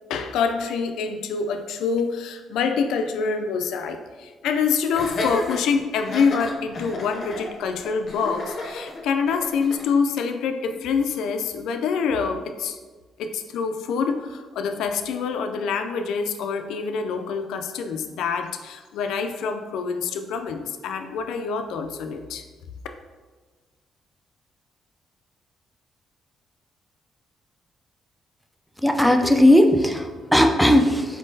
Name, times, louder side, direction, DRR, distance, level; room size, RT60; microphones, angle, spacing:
voice 1, 0.1-12.8 13.2-22.4, left 5 dB, 85° left, 6 dB, 0.3 m, -26 dB
Laughter, 4.9-9.9, left 2 dB, 50° left, 0.6 m, -32 dB
voice 2, 28.8-31.2, left 1 dB, ahead, 5 dB, 0.4 m, -17 dB
4.3 x 3.6 x 2.6 m, 1.4 s
cardioid pair, 90°, 0 cm